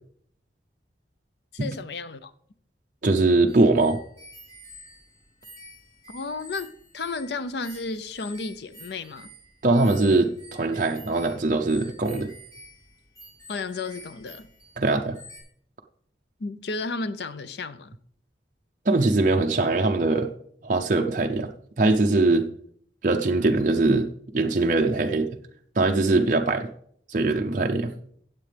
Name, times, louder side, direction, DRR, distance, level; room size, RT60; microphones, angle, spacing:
voice 1, 1.5-2.3 6.1-9.3 13.5-14.5 16.4-17.9, left 3 dB, 65° left, 0.6 m, -33 dB
voice 2, 3.0-4.0 9.6-12.3 14.8-15.2 18.9-20.3 20.6-21.5 21.8-22.5 23.0-24.1 24.3-25.3 25.8-26.7 27.1-27.9, right 2 dB, 45° right, 0.6 m, -21 dB
sound 1, 3.5-14.9 15.1-15.4, equal, 15° left, 3.2 m, -48 dB
16.5 x 7.6 x 3.4 m
head